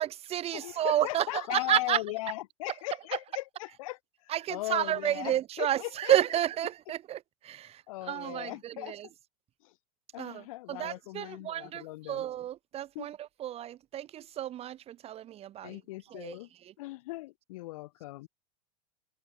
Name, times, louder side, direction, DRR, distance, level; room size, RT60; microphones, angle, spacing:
voice 1, 0.0-2.0 4.3-9.1 10.2-15.8 16.1-16.4 16.6-16.7, right 12 dB, 30° right, 1.2 m, -31 dB
voice 2, 0.5-6.1 7.9-9.0 9.6-9.7 10.1-12.3 12.9-13.1 15.6-16.5 16.8-18.3, left 19 dB, 55° left, 2.3 m, -38 dB
figure-of-eight pair, 90°, 21 cm